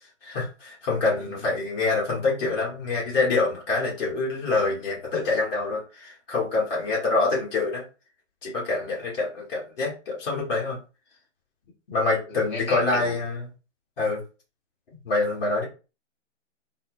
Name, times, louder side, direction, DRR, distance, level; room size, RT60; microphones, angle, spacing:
voice 1, 0.2-7.8 8.4-10.8 11.9-13.5 14.0-14.2 15.1-15.6, left 3 dB, 50° left, 1.7 m, -26 dB
voice 2, 12.3-13.2, left 1 dB, 15° left, 0.9 m, -35 dB
3.9 x 2.1 x 3.2 m
figure-of-eight pair, 130°, 36 cm